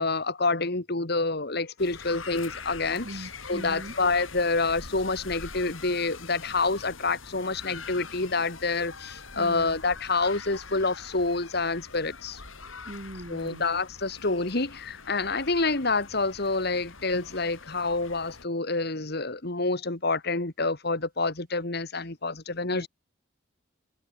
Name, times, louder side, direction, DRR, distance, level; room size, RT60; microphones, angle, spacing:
voice 1, 0.0-12.4 13.3-22.9, left 3 dB, 50° left, 2.1 m, -28 dB
sound 1, 1.8-18.5, left 4 dB, 80° left, 5.7 m, -44 dB
voice 2, 3.0-3.9 9.3-9.8 12.8-13.7 22.7-22.9, right 1 dB, 45° right, 2.4 m, -41 dB
head